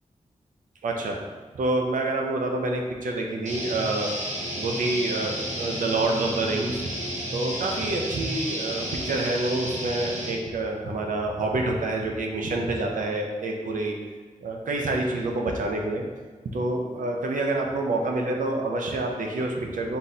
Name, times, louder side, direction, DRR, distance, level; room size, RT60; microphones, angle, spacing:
voice 1, 0.8-1.2 1.5-4.1 4.6-6.9 7.3-14.0 14.4-16.1 16.5-20.0, right 2 dB, 85° right, 1 dB, 0.6 m, -27 dB
sound 1, 3.5-10.3, equal, 65° right, 1.0 m, -32 dB
4.0 x 3.7 x 2.7 m, 1.4 s
wide cardioid pair, 115°, 13 cm